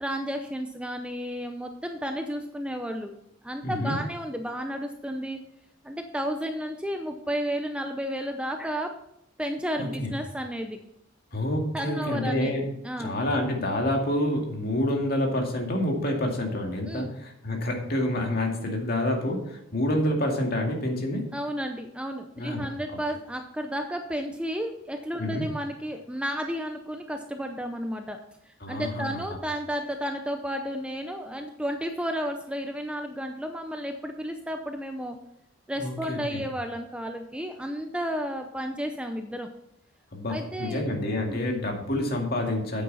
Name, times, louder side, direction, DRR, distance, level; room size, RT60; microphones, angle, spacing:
voice 1, 0.0-3.1 3.4-5.4 5.8-8.9 9.4-10.8 11.7-12.5 12.8-13.2 16.8-17.1 21.3-28.2 28.5-35.2 35.7-39.5 40.3-40.8 41.1-41.4, equal, 5° right, 5 dB, 0.6 m, -32 dB
voice 2, 3.6-3.9 9.8-10.1 11.3-12.7 13.0-21.2 22.4-22.7 25.2-25.4 28.6-29.2 35.8-36.4 40.1-42.8, left 1 dB, 45° left, 1 dB, 2.2 m, -28 dB
9.6 x 8.5 x 4.1 m, 0.82 s
head